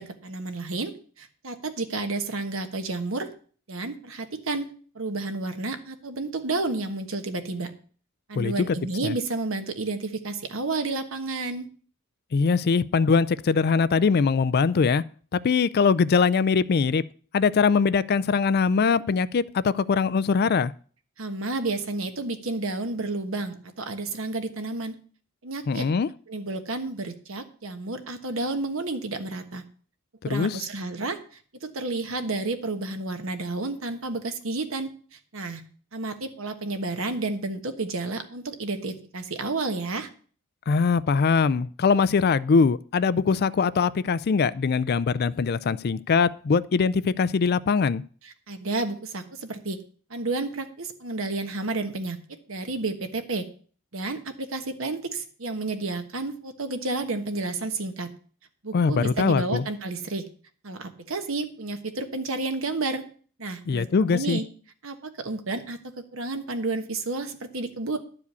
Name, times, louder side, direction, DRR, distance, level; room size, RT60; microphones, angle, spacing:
voice 1, 0.0-3.3 3.7-4.7 4.9-7.7 8.3-11.7 21.2-24.9 25.4-25.9 26.3-29.6 30.2-31.2 31.6-35.6 35.9-40.1 48.2-49.8 50.1-53.5 53.9-58.1 58.6-60.3 60.6-63.0 63.4-64.4 64.8-68.0, right 3 dB, 70° right, 1.3 m, -31 dB
voice 2, 8.4-8.8 9.0-9.1 12.3-15.0 15.3-17.0 17.3-20.7 25.7-26.1 30.3-30.6 40.7-48.0 58.7-59.6 63.7-64.4, left 5 dB, 50° left, 0.4 m, -22 dB
11.5 x 4.9 x 8.2 m
head